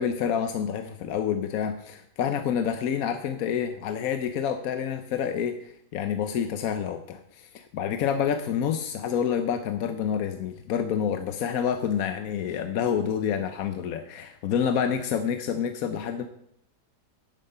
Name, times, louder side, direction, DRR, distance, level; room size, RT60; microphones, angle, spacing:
voice 1, 0.0-16.2, left 8 dB, 65° left, 8 dB, 1.0 m, -28 dB
10.5 x 10.5 x 5.5 m, 0.72 s
omnidirectional pair, 1.9 m